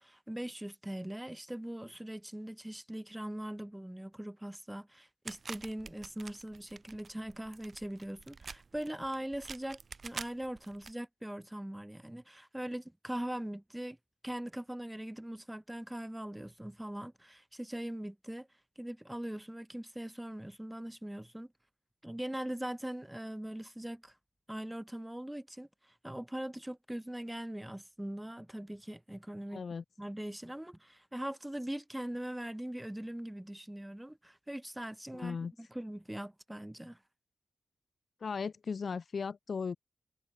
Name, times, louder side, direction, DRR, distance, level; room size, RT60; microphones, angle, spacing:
voice 1, 0.0-14.0 14.2-18.5 18.8-21.5 22.0-24.1 24.5-29.6 30.0-37.0, right 1 dB, 5° right, 3.7 m, -41 dB
sound 1, 5.2-10.9, right 4 dB, 40° right, 5.7 m, -48 dB
voice 2, 29.5-29.8 35.1-35.5 38.2-39.8, left 5 dB, 50° left, 2.1 m, -37 dB
wide cardioid pair, 135°, 0 cm